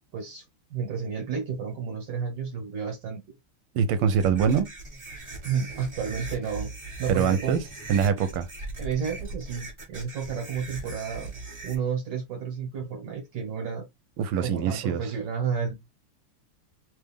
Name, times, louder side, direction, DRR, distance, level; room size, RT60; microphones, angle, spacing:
voice 1, 0.1-0.4 0.7-3.2 5.4-6.7 7.0-7.6 8.8-11.3 11.6-13.9 14.4-15.9, right 6 dB, 60° right, 1.8 m, -31 dB
voice 2, 3.7-4.7 7.1-7.6 7.9-8.5 14.2-15.0, right 7 dB, 85° right, 1.6 m, -24 dB
sound 1, 4.1-11.7, right 3 dB, 20° right, 1.1 m, -39 dB
3.6 x 3.4 x 3.4 m
omnidirectional pair, 2.4 m